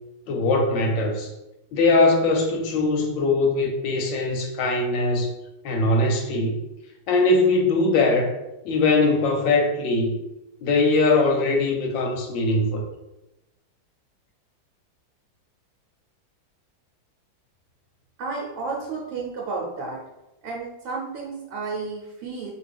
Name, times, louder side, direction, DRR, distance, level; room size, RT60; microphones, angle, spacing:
voice 1, 0.3-1.3 1.7-5.3 5.6-6.6 7.1-8.3 8.6-10.2 10.6-12.8, left 2 dB, 80° left, 2 dB, 1.3 m, -21 dB
voice 2, 18.2-20.0 20.4-22.5, right 4 dB, 80° right, -2 dB, 1.3 m, -32 dB
2.9 x 2.7 x 3.3 m, 0.94 s
omnidirectional pair, 2.2 m